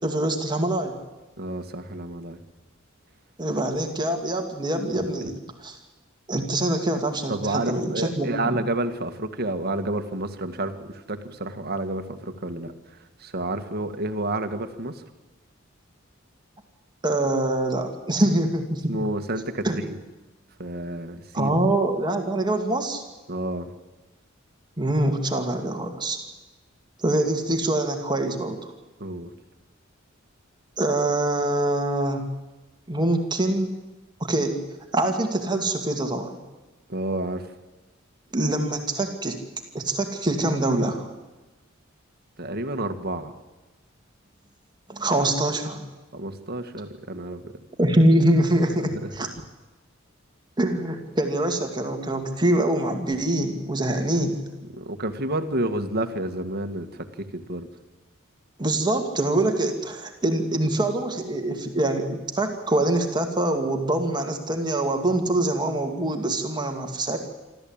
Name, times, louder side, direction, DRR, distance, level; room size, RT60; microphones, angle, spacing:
voice 1, 0.0-1.0 3.4-5.3 5.6-5.7 6.3-8.6 17.0-18.9 19.6-19.8 21.3-23.0 24.8-26.2 27.0-28.6 30.8-32.2 32.9-33.8 34.2-34.6 34.9-36.3 38.3-39.4 39.7-41.0 44.9-45.8 47.8-49.3 50.6-54.5 58.6-67.2, right 1 dB, 20° right, 4 dB, 2.4 m, -24 dB
voice 2, 1.4-2.4 5.0-5.3 7.3-15.0 18.9-20.0 20.6-21.6 23.3-23.7 29.0-29.3 36.9-37.5 42.4-43.3 46.1-47.5 48.9-49.1 54.7-57.7, right 1 dB, 50° right, 8 dB, 1.8 m, -30 dB
26.5 x 13.5 x 8.9 m, 1.1 s
head